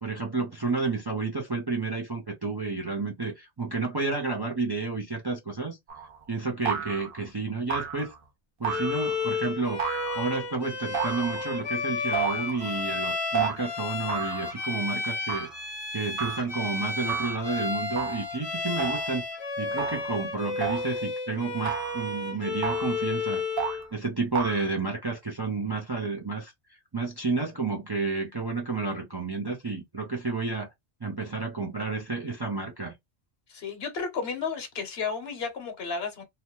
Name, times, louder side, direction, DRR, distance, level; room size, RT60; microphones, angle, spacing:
voice 1, 0.0-5.8 6.3-8.1 8.6-9.8 10.1-15.5 15.9-19.2 19.6-23.4 23.9-30.7 31.0-32.9, right 4 dB, 30° right, 0.5 m, -31 dB
sound 1, 5.9-6.2 6.7-7.2 7.7-8.2 8.6-9.2 9.8-10.4 10.9-11.7 12.1-12.7 13.3-13.6 14.1-14.6 15.3-15.6 16.2-16.5 17.1-17.5 18.0-18.3 18.8-19.2 19.8-20.2 20.6-21.0 21.7-22.1 22.6-23.0 23.6-23.9 24.3-24.6, right 7 dB, 55° right, 0.9 m, -32 dB
Bowed string instrument, 8.6-23.9, left 3 dB, 25° left, 0.8 m, -32 dB
voice 2, 33.5-36.2, left 5 dB, 65° left, 1.1 m, -32 dB
2.8 x 2.2 x 2.9 m
omnidirectional pair, 1.2 m